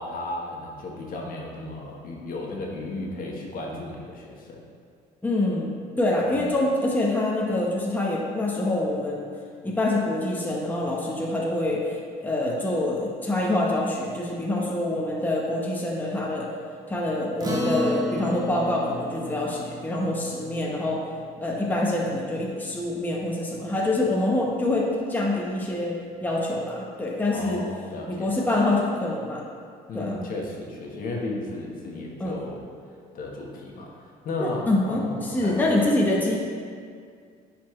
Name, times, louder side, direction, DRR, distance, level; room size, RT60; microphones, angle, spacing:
voice 1, 0.0-4.6 6.2-6.4 27.3-28.7 29.9-32.6 33.1-35.8, left 2 dB, 55° left, -1 dB, 1.3 m, -34 dB
voice 2, 5.2-9.3 9.6-16.5 16.9-21.0 21.4-27.6 28.1-29.4 29.9-30.1 32.2-32.5 34.4-36.4, left 1 dB, 10° left, -3 dB, 0.9 m, -26 dB
Acoustic guitar, 17.4-22.1, equal, 20° right, 1.1 m, -33 dB
10.0 x 4.3 x 3.2 m, 2.2 s
cardioid pair, 110°, 17 cm